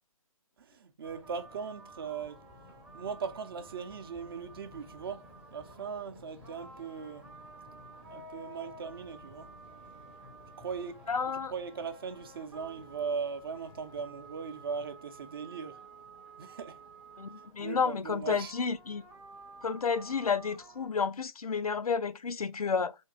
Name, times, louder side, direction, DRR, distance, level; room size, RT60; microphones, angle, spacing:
voice 1, 0.6-2.5 2.9-7.3 8.1-9.5 10.6-15.8 16.4-16.8 17.6-18.5, right 6 dB, 40° right, 0.7 m, -39 dB
sound 1, 1.0-20.9, right 2 dB, 5° right, 0.7 m, -51 dB
voice 2, 11.1-11.5 17.2-19.0 19.6-22.9, left 5 dB, 80° left, 0.5 m, -31 dB
3.6 x 2.7 x 3.9 m
figure-of-eight pair, 140°, 19 cm